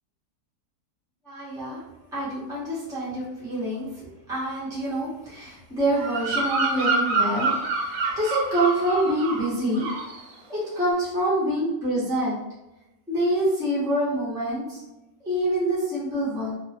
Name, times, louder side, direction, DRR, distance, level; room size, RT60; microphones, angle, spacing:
voice 1, 1.3-1.8 2.1-7.5 7.8-7.9 8.2-9.9 10.5-12.4 13.1-14.8 15.2-16.5, right 1 dB, 5° right, -8 dB, 0.6 m, -26 dB
Bird vocalization bird call bird song, 5.9-9.5 9.7-10.2, right 3 dB, 75° right, 1.1 m, -26 dB
3.0 x 2.1 x 2.7 m, 0.98 s
omnidirectional pair, 1.7 m